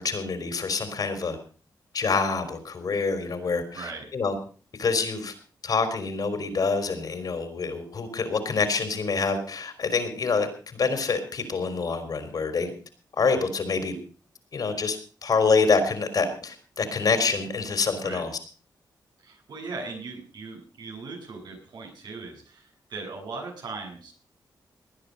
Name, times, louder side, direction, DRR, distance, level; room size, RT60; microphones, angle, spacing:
voice 1, 0.0-1.4 1.9-4.4 4.8-5.3 5.6-12.7 13.2-13.9 14.5-15.0 15.2-18.3, left 4 dB, 60° left, 9 dB, 3.9 m, -26 dB
voice 2, 3.7-4.1 18.0-18.3 19.2-24.1, right 3 dB, 80° right, 1 dB, 7.4 m, -39 dB
19.5 x 10.5 x 5.4 m, 0.39 s
cardioid pair, 85°, 7 cm